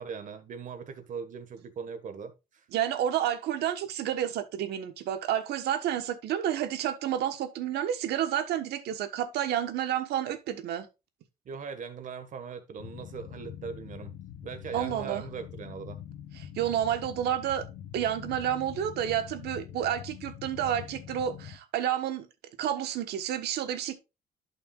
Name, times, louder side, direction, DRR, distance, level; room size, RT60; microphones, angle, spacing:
voice 1, 0.0-2.7 11.5-14.1 14.4-16.0, right 6 dB, 50° right, 1.6 m, -40 dB
voice 2, 2.7-10.9 14.7-15.2 16.5-17.6 17.9-22.3 22.6-24.0, right 10 dB, 75° right, 1.3 m, -30 dB
sound 1, 12.8-21.6, left 10 dB, 60° left, 1.2 m, -44 dB
11.0 x 5.8 x 2.4 m
cardioid pair, 110°, 17 cm